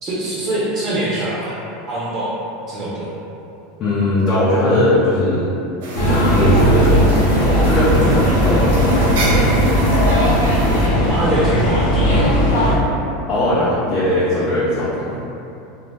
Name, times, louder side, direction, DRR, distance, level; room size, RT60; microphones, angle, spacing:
voice 1, 0.0-1.6 1.9-2.4 2.7-3.2 11.1-12.6, right 1 dB, 35° right, -8 dB, 0.7 m, -23 dB
voice 2, 3.8-5.5 6.0-7.0 7.6-9.5 13.3-15.2, left 1 dB, 40° left, -10 dB, 0.6 m, -19 dB
sound 1, 5.8-10.9, right 1 dB, 75° right, 0.5 m, -29 dB
sound 2, 5.9-12.7, equal, 85° left, 0.6 m, -16 dB
2.5 x 2.1 x 3.3 m, 2.8 s
hypercardioid pair, 105°, 0 cm